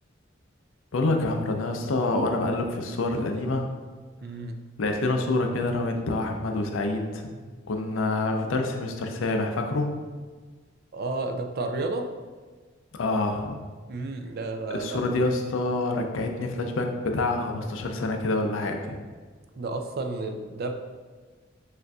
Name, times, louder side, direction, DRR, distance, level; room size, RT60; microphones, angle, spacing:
voice 1, 0.9-3.7 4.8-7.3 7.7-9.9 12.9-13.6 14.7-19.0, left 2 dB, 80° left, 4 dB, 0.5 m, -27 dB
voice 2, 4.2-4.6 10.9-12.1 13.9-15.2 19.5-20.7, right 3 dB, 55° right, 5 dB, 0.4 m, -31 dB
6.3 x 2.6 x 2.3 m, 1.4 s
head